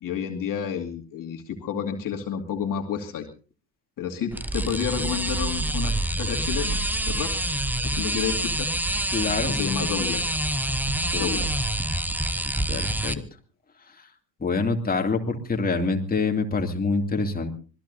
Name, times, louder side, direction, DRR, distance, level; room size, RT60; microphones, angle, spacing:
voice 1, 0.0-3.3 4.0-7.3 7.8-8.7 9.5-10.4 11.1-11.6 13.1-13.2, left 8 dB, 40° left, 2 dB, 2.6 m, -30 dB
sound 1, 4.3-13.1, right 1 dB, 5° right, 0.9 m, -26 dB
voice 2, 9.1-9.6 11.1-11.4 12.7-13.2 14.4-17.5, left 3 dB, 15° left, 3 dB, 2.6 m, -26 dB
25.5 x 20.0 x 2.7 m, 0.38 s
figure-of-eight pair, 60°, 50 cm